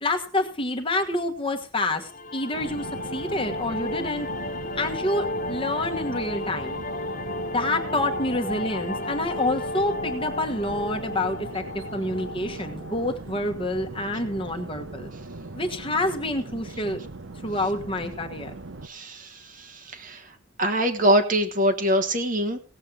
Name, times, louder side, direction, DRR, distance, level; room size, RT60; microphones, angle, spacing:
voice 1, 0.0-4.3 4.8-6.8 7.5-15.1 15.5-17.0 17.4-18.5, left 1 dB, 25° left, 5 dB, 1.4 m, -28 dB
sound 1, 2.1-13.1, left 2 dB, 40° left, 0.7 m, -33 dB
sound 2, 2.5-18.9, right 2 dB, 75° right, 1.0 m, -39 dB
voice 2, 18.8-22.6, equal, 40° right, 7 dB, 1.3 m, -24 dB
17.5 x 7.7 x 4.7 m, 0.37 s
head